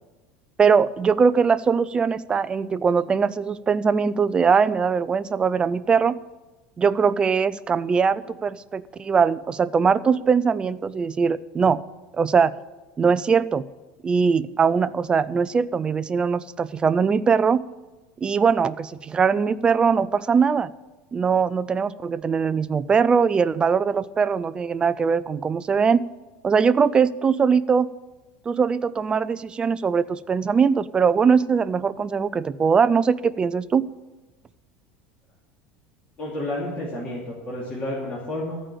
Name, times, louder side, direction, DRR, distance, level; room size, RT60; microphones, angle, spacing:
voice 1, 0.6-6.2 6.8-11.8 12.1-12.5 13.0-13.6 14.0-17.6 18.2-20.7 21.1-26.1 26.4-27.9 28.5-33.9, right 6 dB, 20° right, 16 dB, 0.3 m, -21 dB
voice 2, 36.2-38.6, left 1 dB, 30° left, -6 dB, 2.6 m, -30 dB
14.0 x 5.1 x 8.9 m, 1.2 s
supercardioid pair, 140°, 5 cm